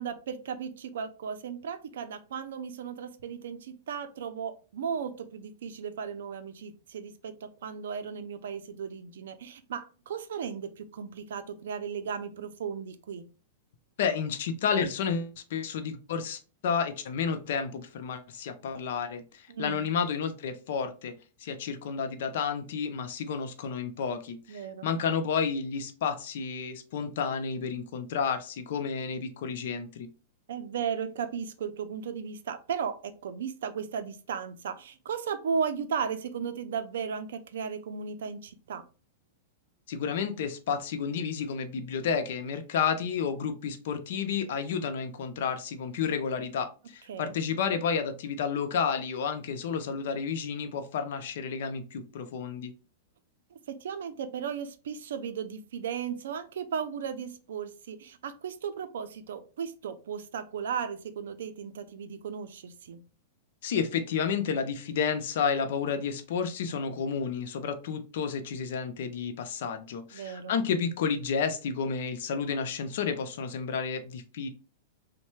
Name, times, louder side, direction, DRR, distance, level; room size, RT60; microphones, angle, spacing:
voice 1, 0.0-13.2 19.5-19.9 24.5-24.9 30.5-38.9 47.1-47.3 53.7-63.0 70.1-70.6, right 7 dB, 80° right, 0.4 m, -35 dB
voice 2, 14.0-21.1 21.4-30.1 39.9-52.7 63.6-74.5, left 6 dB, 65° left, 0.5 m, -31 dB
3.1 x 2.1 x 3.1 m
supercardioid pair, 150°, 0 cm